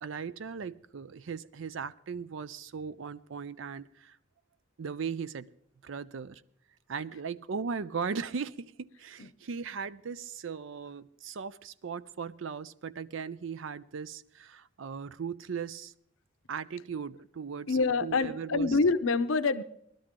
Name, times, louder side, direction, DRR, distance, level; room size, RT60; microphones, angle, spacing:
voice 1, 0.0-4.2 4.8-5.5 5.8-6.4 6.9-15.9 16.5-18.8, right 6 dB, 70° right, 16 dB, 0.5 m, -38 dB
voice 2, 17.7-19.6, left 4 dB, 80° left, 12 dB, 0.7 m, -26 dB
19.5 x 12.5 x 3.7 m, 0.70 s
head